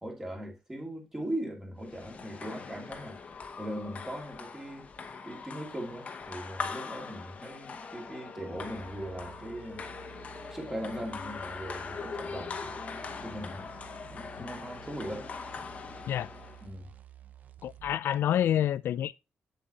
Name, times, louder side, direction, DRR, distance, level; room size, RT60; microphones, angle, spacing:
voice 1, 0.0-3.2 3.6-4.9 5.2-9.9 10.5-13.6 14.1-15.3 16.6-16.9, right 1 dB, 10° right, 2.4 m, -39 dB
sound 1, 1.8-16.7, left 5 dB, 40° left, 1.1 m, -42 dB
sound 2, 8.5-18.0, right 11 dB, 45° right, 0.7 m, -52 dB
voice 2, 17.6-19.1, left 11 dB, 90° left, 0.3 m, -28 dB
8.3 x 7.5 x 2.8 m
wide cardioid pair, 180°, 4 cm